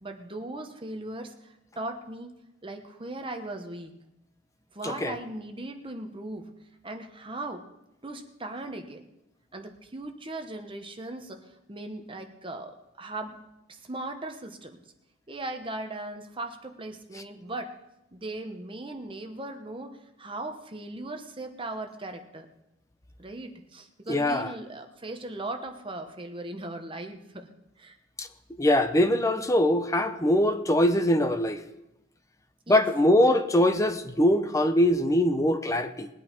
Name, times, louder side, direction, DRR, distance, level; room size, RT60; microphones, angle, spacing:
voice 1, 0.0-2.3 2.6-3.9 4.7-6.5 6.8-7.6 8.0-9.1 9.5-13.4 13.7-14.8 15.3-17.7 18.1-22.5 23.2-27.5 27.8-28.0 32.7-32.8, right 2 dB, 30° right, 1.1 m, -38 dB
voice 2, 24.1-24.5 28.2-28.3 28.6-31.6 32.7-36.1, left 1 dB, 15° left, 0.8 m, -22 dB
20.5 x 8.6 x 4.5 m
head